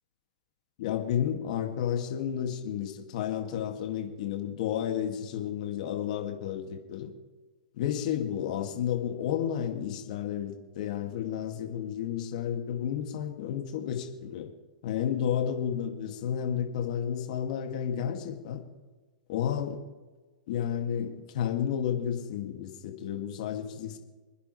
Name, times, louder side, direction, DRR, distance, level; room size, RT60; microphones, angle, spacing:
voice 1, 0.8-7.1 7.8-14.5 14.8-18.6 19.3-19.8 20.5-24.0, left 9 dB, 60° left, 4 dB, 2.3 m, -31 dB
28.0 x 10.0 x 3.3 m, 1.3 s
hypercardioid pair, 125°, 5 cm